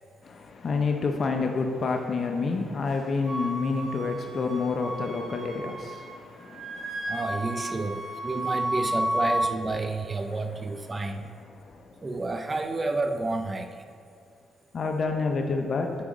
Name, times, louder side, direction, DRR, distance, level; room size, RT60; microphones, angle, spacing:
voice 1, 0.2-7.2 7.9-8.0 10.9-11.2 11.6-12.0 14.7-15.9, left 4 dB, 45° left, 3 dB, 0.6 m, -29 dB
Wind instrument woodwind instrument, 3.3-6.2 6.4-9.5, right 1 dB, 45° right, 1.4 m, -32 dB
voice 2, 7.1-11.3 12.0-13.9, right 2 dB, 25° right, 7 dB, 0.4 m, -30 dB
9.6 x 5.0 x 3.8 m, 2.3 s
cardioid pair, 90°, 0 cm